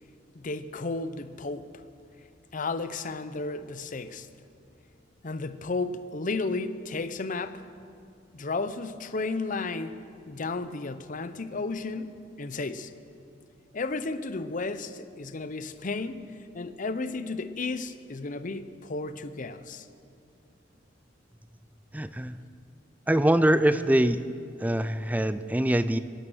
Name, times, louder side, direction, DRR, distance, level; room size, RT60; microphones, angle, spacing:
voice 1, 0.3-1.8 2.5-4.3 5.2-7.6 8.3-10.0 10.3-12.9 13.7-16.2 16.5-19.9, left 3 dB, 45° left, 12 dB, 0.7 m, -33 dB
voice 2, 21.9-22.4 23.1-24.2 24.6-26.0, right 1 dB, 10° right, 13 dB, 0.5 m, -23 dB
24.0 x 9.3 x 6.3 m, 2.5 s
head